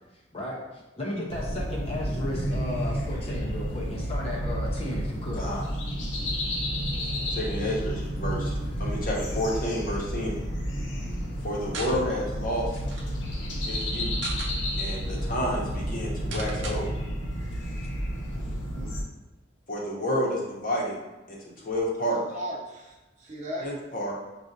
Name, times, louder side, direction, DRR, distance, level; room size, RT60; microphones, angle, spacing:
voice 1, 0.3-5.6 12.7-12.8, left 1 dB, 30° left, -3 dB, 0.5 m, -34 dB
sound 1, 1.3-19.0, equal, 70° left, 0.8 m, -31 dB
voice 2, 5.3-5.6 7.3-10.4 11.4-12.8 13.6-14.1 14.8-16.9 19.7-21.0 21.3-22.2 23.6-24.1, equal, 45° left, -3 dB, 0.9 m, -30 dB
sound 2, 11.7-12.0 12.5-12.6 12.8-13.1 14.0-14.5 15.1-15.2 15.4-15.6 16.3-16.8, right 3 dB, 75° right, 0.5 m, -37 dB
voice 3, 18.4-19.0 22.0-23.7, equal, 40° right, -2 dB, 0.7 m, -38 dB
6.1 x 2.4 x 2.6 m, 1.1 s
head